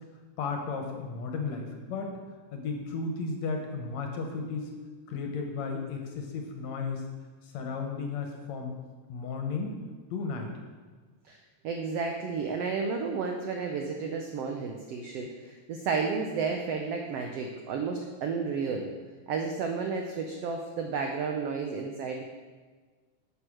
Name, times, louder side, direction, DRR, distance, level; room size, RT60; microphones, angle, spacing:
voice 1, 0.4-2.1 2.5-4.7 5.1-7.0 7.4-8.7 9.1-9.8 10.1-10.6, left 4 dB, 65° left, 3 dB, 2.0 m, -34 dB
voice 2, 11.6-18.9 19.3-22.2, right 5 dB, 80° right, 3 dB, 1.4 m, -32 dB
9.0 x 6.6 x 6.2 m, 1.4 s
omnidirectional pair, 3.7 m